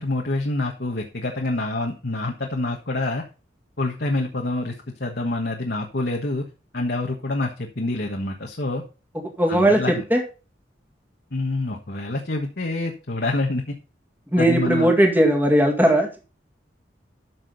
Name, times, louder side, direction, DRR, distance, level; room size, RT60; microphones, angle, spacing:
voice 1, 0.0-3.2 3.8-4.7 5.0-6.5 6.7-8.8 9.5-10.0 11.3-13.8 14.4-14.9, left 2 dB, 60° left, 1 dB, 1.5 m, -26 dB
voice 2, 9.4-10.2 14.3-16.1, right 1 dB, 10° right, 2 dB, 2.1 m, -18 dB
12.5 x 6.2 x 4.0 m, 0.33 s
head